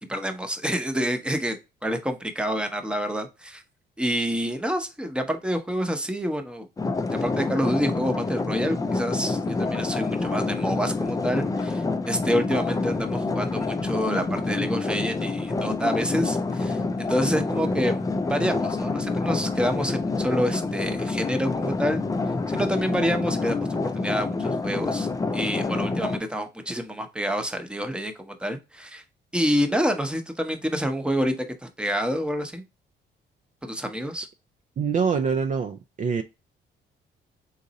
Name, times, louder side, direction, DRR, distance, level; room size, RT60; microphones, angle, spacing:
voice 1, 0.1-1.6 1.8-3.6 4.0-6.7 7.1-18.0 18.3-22.0 22.5-25.1 25.3-29.0 29.3-32.6 33.6-34.3, equal, 5° right, 0.8 m, -28 dB
sound 1, 6.8-26.2, left 3 dB, 15° left, 0.4 m, -27 dB
voice 2, 34.8-36.2, right 6 dB, 40° right, 0.4 m, -25 dB
4.0 x 2.5 x 4.0 m
cardioid pair, 90°, 20 cm